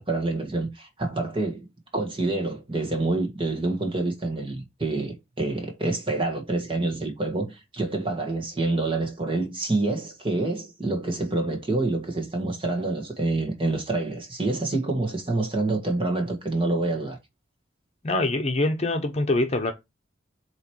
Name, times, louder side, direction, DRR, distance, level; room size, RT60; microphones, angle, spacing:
voice 1, 0.0-17.2, right 2 dB, 30° right, 1.7 m, -27 dB
voice 2, 18.0-19.7, left 2 dB, 35° left, 0.9 m, -24 dB
8.0 x 3.2 x 4.7 m
head